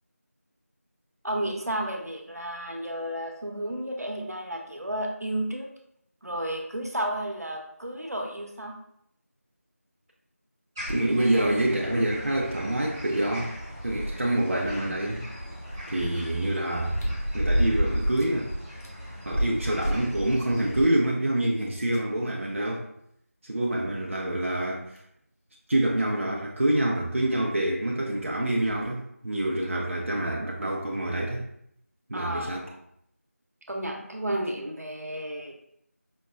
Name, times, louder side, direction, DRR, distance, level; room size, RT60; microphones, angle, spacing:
voice 1, 1.2-5.7 6.2-8.7 32.1-32.6 33.7-35.5, right 1 dB, 85° right, 1 dB, 0.8 m, -32 dB
sound 1, 10.8-20.9, equal, 10° right, 0.7 m, -32 dB
voice 2, 10.9-13.6 13.8-15.2 15.9-17.0 17.3-18.5 19.2-22.8 23.4-25.0 25.7-31.5 32.1-32.7, right 1 dB, 55° right, -2 dB, 0.5 m, -26 dB
sound 2, 14.7-14.8 16.7-18.4 18.8-18.9 19.4-19.5 19.8-20.9 21.9-22.0 23.5-23.6 24.1-24.2 25.0-25.2 26.5-26.6 26.8-26.9 28.6-28.9 29.6-29.7, equal, 75° left, 1.0 m, -35 dB
5.1 x 2.1 x 2.5 m, 0.72 s
figure-of-eight pair, 175°, 8 cm